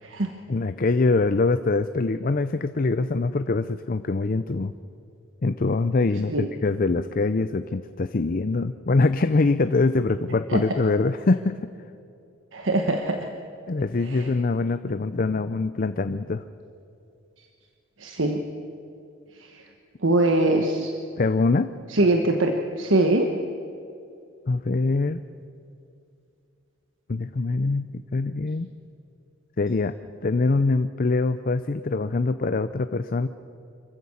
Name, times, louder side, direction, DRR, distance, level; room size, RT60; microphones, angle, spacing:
voice 1, 0.5-4.7 5.4-11.5 13.7-16.4 21.2-21.7 24.5-25.2 27.1-28.7 29.6-29.9 30.2-33.3, left 3 dB, 45° left, 11 dB, 0.5 m, -24 dB
voice 2, 12.5-13.3 14.1-14.3 18.0-18.4 20.0-20.9 21.9-23.3, right 2 dB, 70° right, 4 dB, 1.3 m, -22 dB
26.0 x 15.0 x 7.2 m, 2.6 s
head